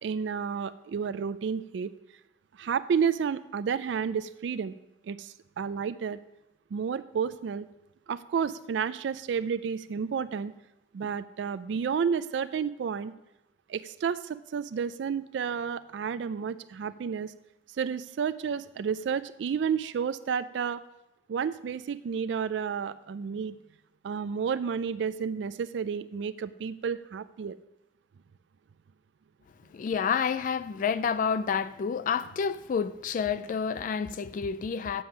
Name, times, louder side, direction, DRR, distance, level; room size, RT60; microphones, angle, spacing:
voice 1, 0.0-1.9 2.6-4.7 5.0-6.2 6.7-7.7 8.1-10.5 10.9-13.1 13.7-17.3 17.8-20.8 21.3-23.5 24.0-27.6, right 6 dB, 80° right, 0.3 m, -31 dB
voice 2, 29.7-35.0, left 6 dB, 50° left, 0.3 m, -29 dB
7.8 x 7.1 x 6.2 m
head